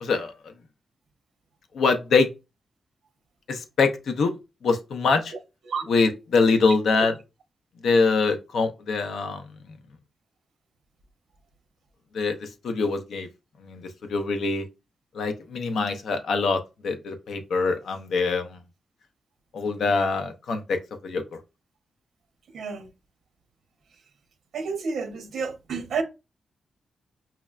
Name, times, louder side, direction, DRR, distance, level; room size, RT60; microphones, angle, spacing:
voice 1, 0.0-0.3 1.7-2.3 3.5-4.4 4.6-5.3 5.9-7.1 7.8-9.4 12.1-13.3 13.6-13.8 14.1-14.6 15.1-18.6 19.5-21.2, left 4 dB, 70° left, 0.5 m, -24 dB
voice 2, 22.5-22.9 24.5-26.0, right 5 dB, 65° right, 0.7 m, -30 dB
5.6 x 2.1 x 2.3 m
wide cardioid pair, 170°, 0 cm